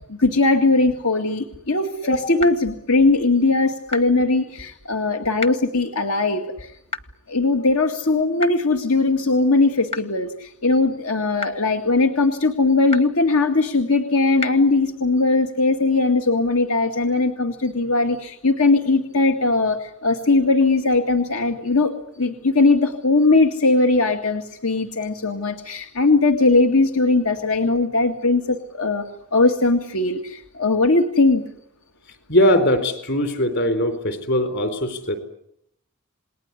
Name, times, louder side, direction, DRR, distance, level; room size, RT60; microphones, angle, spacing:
voice 1, 0.1-6.7 7.3-31.4, left 3 dB, 80° left, 4 dB, 2.1 m, -19 dB
sound 1, 2.4-2.5 3.9-4.0 5.4-5.5 6.9-7.0 8.4-8.5 9.9-10.0 11.4-11.5 12.9-13.0 14.4-14.5, left 4 dB, 25° left, 1.0 m, -28 dB
voice 2, 32.3-35.2, equal, 55° left, 9 dB, 4.3 m, -20 dB
28.5 x 20.0 x 9.8 m, 0.75 s
head